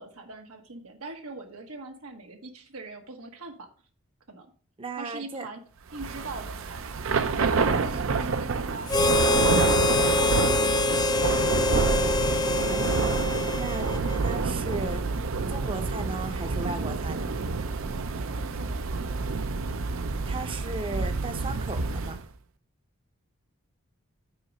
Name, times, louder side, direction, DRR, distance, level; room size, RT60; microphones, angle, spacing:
voice 1, 0.0-3.7 4.3-4.5 5.0-5.6 5.9-6.8 7.1-10.6 18.3-19.1, right 3 dB, 85° right, 3 dB, 1.2 m, -42 dB
voice 2, 4.8-5.5 12.4-13.0 13.5-13.9 14.2-15.0 15.5-17.3 20.3-22.2, right 3 dB, 25° right, 9 dB, 0.7 m, -36 dB
Thunder / Rain, 5.9-22.2, right 4 dB, 70° right, 0.6 m, -28 dB
Harmonica, 8.9-14.4, left 3 dB, 20° left, 0.3 m, -25 dB
9.4 x 4.0 x 4.9 m, 0.42 s
head